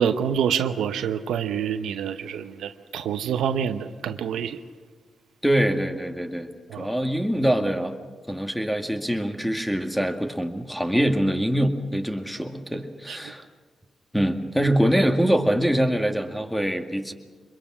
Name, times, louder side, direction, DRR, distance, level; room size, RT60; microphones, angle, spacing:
voice 1, 0.0-4.6 6.7-6.9 13.1-13.3, right 8 dB, 85° right, 9 dB, 0.8 m, -27 dB
voice 2, 5.4-6.5 6.8-8.0 8.3-13.5 14.1-17.1, equal, ahead, 6 dB, 2.1 m, -24 dB
24.5 x 22.0 x 6.2 m, 1.5 s
cardioid pair, 60°, 0 cm